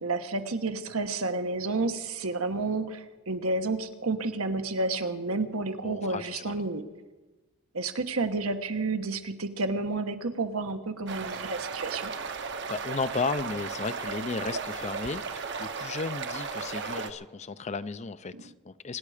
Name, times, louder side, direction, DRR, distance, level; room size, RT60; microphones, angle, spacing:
voice 1, 0.0-6.8 7.7-12.1 18.3-18.4, right 3 dB, 80° right, 1.2 m, -30 dB
voice 2, 5.8-6.6 12.4-19.0, left 4 dB, 30° left, 0.5 m, -34 dB
sound 1, 11.1-17.1, right 5 dB, 55° right, 0.9 m, -35 dB
25.0 x 10.0 x 5.0 m
head